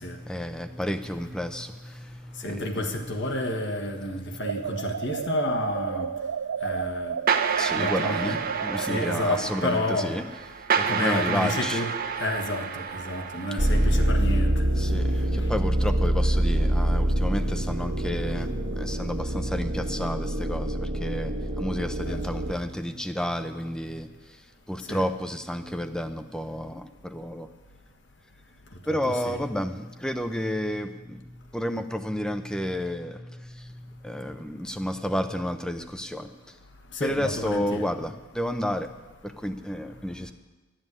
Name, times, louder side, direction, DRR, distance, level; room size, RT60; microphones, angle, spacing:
voice 1, 0.0-2.9 7.6-10.3 10.7-11.8 14.8-27.5 28.9-36.5 37.0-38.9 39.2-40.3, equal, 5° left, 0.6 m, -31 dB
voice 2, 2.4-6.1 6.6-7.2 7.7-8.5 8.8-10.2 10.9-11.9 12.2-14.7 22.0-22.2 24.9-25.0 29.0-29.4 36.9-37.9, left 1 dB, 55° left, 1.5 m, -30 dB
sound 1, 4.4-9.3, right 7 dB, 90° right, 0.4 m, -32 dB
sound 2, 7.3-14.1, right 6 dB, 45° right, 0.7 m, -29 dB
sound 3, 13.6-22.5, right 1 dB, 65° right, 1.5 m, -25 dB
12.5 x 7.5 x 9.8 m
head